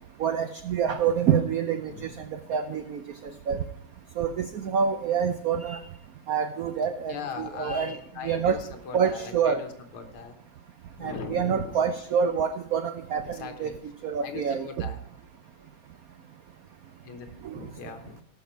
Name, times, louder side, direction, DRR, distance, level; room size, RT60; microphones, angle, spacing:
voice 1, 0.2-2.1 2.5-3.0 3.5-3.6 4.2-5.8 6.3-8.0 8.2-8.6 8.9-9.6 11.0-13.7 14.0-14.9 17.4-17.6, right 7 dB, 80° right, 9 dB, 0.8 m, -27 dB
voice 2, 7.1-8.6 8.9-10.3 11.0-11.8 13.3-13.8 14.2-15.0 17.0-17.3 17.5-18.2, left 6 dB, 85° left, 7 dB, 2.1 m, -39 dB
18.0 x 6.0 x 4.5 m, 0.68 s
omnidirectional pair, 2.3 m